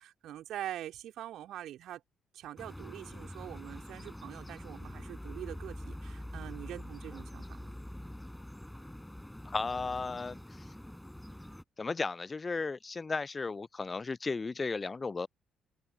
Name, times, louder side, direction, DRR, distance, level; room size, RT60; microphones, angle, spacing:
voice 1, 0.0-2.0 2.3-7.7, right 12 dB, 60° right, 3.1 m, -44 dB
sound 1, 2.6-11.6, left 1 dB, 5° left, 7.6 m, -45 dB
voice 2, 9.5-10.4 11.8-15.3, left 4 dB, 30° left, 0.5 m, -34 dB
figure-of-eight pair, 40°, 0 cm